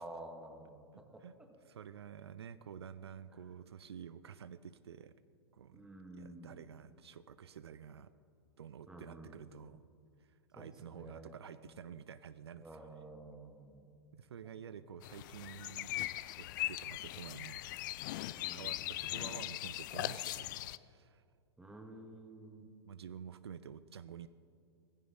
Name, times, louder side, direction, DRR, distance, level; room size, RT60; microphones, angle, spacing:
voice 1, 0.0-1.2 3.4-3.5 5.7-6.6 8.9-9.4 10.6-11.4 12.6-13.9 14.4-14.8 18.4-18.8 21.6-22.7, right 2 dB, 5° right, 2 dB, 2.0 m, -51 dB
voice 2, 0.9-1.3 1.7-5.1 5.5-5.9 6.1-8.1 8.6-9.8 10.2-12.9 14.1-16.0 16.4-17.6 18.5-21.2 22.8-24.3, right 8 dB, 70° right, 14 dB, 0.5 m, -50 dB
sound 1, 15.0-20.8, left 16 dB, 45° left, 0.5 m, -40 dB
17.0 x 15.5 x 4.0 m, 2.3 s
figure-of-eight pair, 105°, 14 cm